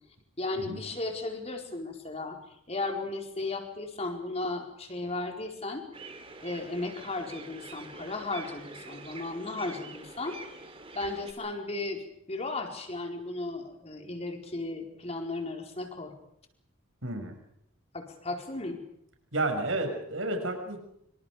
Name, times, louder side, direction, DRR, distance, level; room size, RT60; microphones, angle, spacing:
voice 1, 0.4-2.4 2.7-5.8 6.4-10.4 10.9-16.1 17.9-18.8, left 2 dB, 30° left, 3 dB, 4.7 m, -35 dB
sound 1, 5.9-11.3, right 3 dB, 25° right, 3.0 m, -45 dB
voice 2, 17.0-17.3 19.3-20.8, right 2 dB, 70° right, 4 dB, 6.7 m, -31 dB
27.0 x 25.5 x 5.1 m, 0.74 s
head